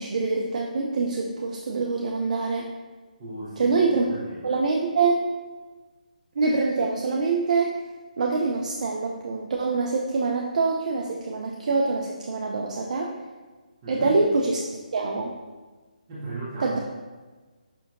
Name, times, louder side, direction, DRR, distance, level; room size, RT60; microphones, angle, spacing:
voice 1, 0.0-2.7 3.6-4.0 4.4-5.2 6.4-7.8 8.2-13.1 13.9-14.6 14.9-15.3 16.6-16.8, right 4 dB, 55° right, -1 dB, 0.4 m, -25 dB
voice 2, 3.2-4.6 13.8-14.2 16.1-16.8, right 2 dB, 30° right, -9 dB, 0.9 m, -37 dB
5.2 x 2.7 x 2.4 m, 1.3 s
figure-of-eight pair, 150°, 5 cm